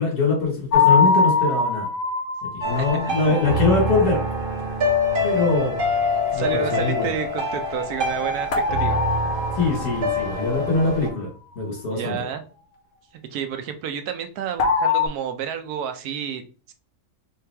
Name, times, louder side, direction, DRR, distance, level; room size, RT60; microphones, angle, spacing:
voice 1, 0.0-1.9 2.4-4.3 5.2-5.8 6.3-7.1 9.5-11.3 11.6-12.2, left 3 dB, 80° left, -2 dB, 1.9 m, -23 dB
sound 1, 0.7-3.7 8.5-10.7 14.6-15.1, left 5 dB, 50° left, 0.9 m, -22 dB
sound 2, 2.6-11.1, left 2 dB, 50° right, 0.7 m, -25 dB
voice 2, 2.7-3.4 6.3-9.0 11.9-12.4 13.3-16.7, right 8 dB, 75° right, 7 dB, 1.1 m, -30 dB
3.8 x 3.1 x 3.3 m, 0.38 s
omnidirectional pair, 1.6 m